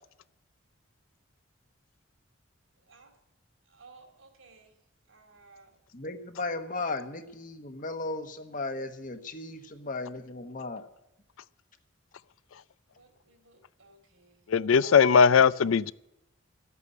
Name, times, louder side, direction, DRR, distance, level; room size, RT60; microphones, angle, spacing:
voice 1, 2.7-3.1 3.6-4.8 5.1-5.8 12.9-14.5 14.8-15.5, right 3 dB, 85° right, 3.0 m, -54 dB
voice 2, 5.9-10.9, left 3 dB, 40° left, 1.1 m, -36 dB
voice 3, 14.5-15.9, left 6 dB, 85° left, 0.4 m, -19 dB
12.5 x 8.3 x 9.4 m
head